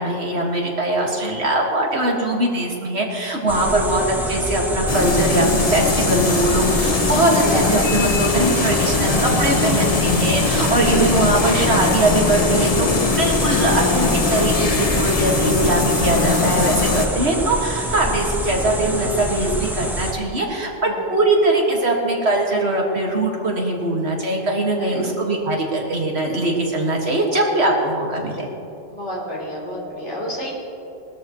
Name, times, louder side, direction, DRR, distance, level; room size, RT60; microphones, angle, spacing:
voice 1, 0.0-28.5, right 1 dB, 60° right, -1 dB, 2.3 m, -21 dB
sound 1, 3.5-20.1, equal, ahead, 0.9 m, -26 dB
sound 2, 4.9-17.1, left 4 dB, 35° left, 0.9 m, -21 dB
voice 2, 7.4-7.7 10.9-11.2 20.9-21.2 24.7-25.0 28.9-30.5, left 1 dB, 70° left, -5 dB, 4.2 m, -30 dB
20.5 x 13.0 x 3.1 m, 2.7 s
omnidirectional pair, 1.3 m